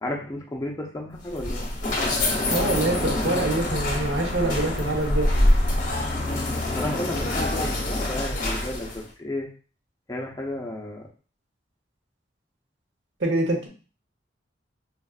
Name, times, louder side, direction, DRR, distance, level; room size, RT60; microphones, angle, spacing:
voice 1, 0.0-1.7 6.7-9.5 10.1-11.1, left 1 dB, 20° left, -1 dB, 0.7 m, -32 dB
sound 1, 1.2-9.1, left 1 dB, 45° left, 0.9 m, -25 dB
voice 2, 2.5-5.3 13.2-13.7, right 2 dB, 85° right, 2 dB, 1.0 m, -25 dB
5.1 x 2.5 x 2.4 m, 0.38 s
head